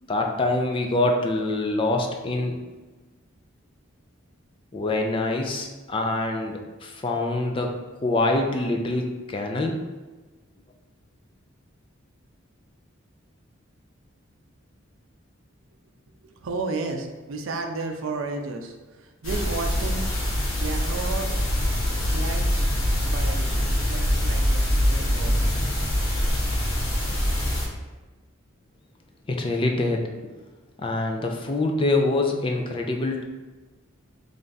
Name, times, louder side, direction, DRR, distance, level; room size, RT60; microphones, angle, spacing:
voice 1, 0.1-2.6 4.7-7.7 8.0-9.8 29.3-30.0 30.8-33.2, left 2 dB, 25° left, 2 dB, 0.3 m, -25 dB
voice 2, 16.2-20.1 20.4-21.5 22.0-22.7 23.0-25.4, right 3 dB, 75° right, 4 dB, 0.5 m, -33 dB
sound 1, 19.2-27.6, equal, 90° left, 1.2 m, -24 dB
3.3 x 2.5 x 3.9 m, 1.2 s
head